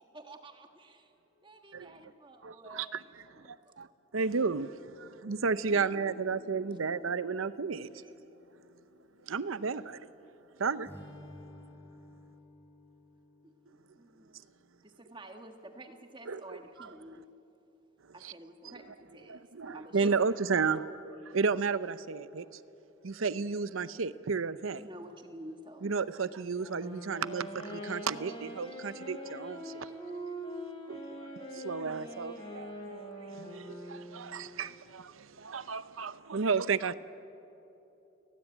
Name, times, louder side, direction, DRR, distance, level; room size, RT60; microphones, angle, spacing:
voice 1, 0.0-1.1 1.4-3.8 7.9-8.1 13.4-14.3 14.8-17.3 18.1-20.1 20.5-20.8 24.7-25.9, right 1 dB, 25° right, 1.6 m, -50 dB
voice 2, 2.4-3.9 4.1-8.0 9.2-10.1 10.6-10.9 16.3-16.9 18.2-18.3 18.6-18.7 19.3-22.6 23.0-24.8 25.8-29.9 30.9-32.8 33.2-36.9, right 5 dB, 85° right, 0.7 m, -33 dB
Guitar, 5.7-9.6, left 4 dB, 80° left, 1.6 m, -54 dB
voice 3, 8.2-8.6 10.3-10.4 20.0-20.1 21.8-21.9 25.4-25.6 30.3-30.9 34.5-34.6 35.0-35.6 36.2-36.9, left 1 dB, 50° left, 2.9 m, -68 dB
Strum, 10.8-15.2, left 1 dB, 10° left, 6.2 m, -53 dB
Wind instrument woodwind instrument, 26.5-34.6, equal, 25° left, 4.9 m, -43 dB
29.5 x 18.0 x 9.0 m
head